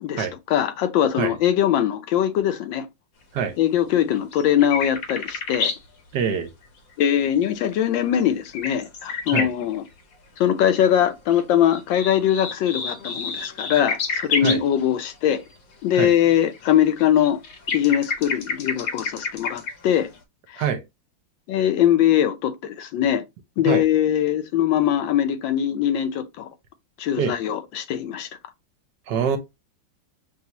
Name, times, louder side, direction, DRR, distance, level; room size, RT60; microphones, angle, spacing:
voice 1, 0.0-2.9 3.6-5.7 7.0-9.8 10.4-15.4 15.8-17.4 17.7-20.1 20.5-20.6 21.5-23.2 23.6-26.5 27.0-28.3, left 10 dB, 80° left, 1.3 m, -21 dB
sound 1, 3.9-5.8 7.7-9.9 11.1-14.7 16.0-19.9 20.1-20.2, left 4 dB, 60° left, 1.0 m, -29 dB
voice 2, 6.1-6.5 9.3-9.5 14.4-14.6 15.9-16.1 20.6-20.8 23.6-23.9 27.2-27.3 29.1-29.4, right 7 dB, 70° right, 1.1 m, -24 dB
5.5 x 2.3 x 2.8 m
omnidirectional pair, 2.1 m